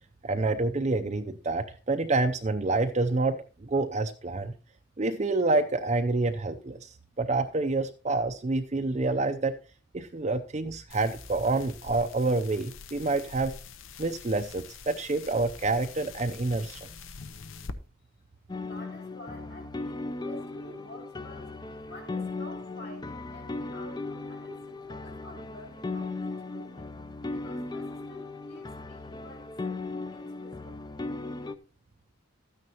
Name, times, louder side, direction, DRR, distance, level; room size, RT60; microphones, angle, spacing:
voice 1, 0.2-3.4 3.6-4.5 5.0-9.6 9.9-13.5 14.0-16.9, right 3 dB, 35° right, 0.5 m, -28 dB
sound 1, 10.9-17.7, left 5 dB, 70° left, 0.7 m, -45 dB
sound 2, 18.5-31.5, left 3 dB, 20° left, 0.4 m, -37 dB
voice 2, 18.6-26.9 27.3-30.8, left 1 dB, 50° left, 3.9 m, -49 dB
12.5 x 9.4 x 2.9 m
head